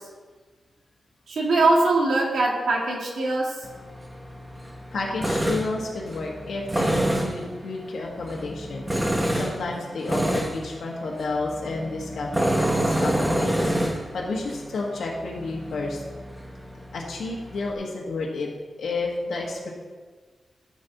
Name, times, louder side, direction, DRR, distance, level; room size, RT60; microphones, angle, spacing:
voice 1, 1.3-3.5, right 2 dB, 75° right, -1 dB, 1.9 m, -22 dB
Tools, 3.6-17.7, right 1 dB, 10° right, 0.8 m, -28 dB
voice 2, 4.9-8.8 9.3-12.3 12.8-13.7 14.1-16.0 16.9-18.5 18.8-19.7, left 3 dB, 70° left, -2 dB, 1.4 m, -31 dB
13.0 x 5.3 x 4.0 m, 1.4 s
wide cardioid pair, 175°, 0 cm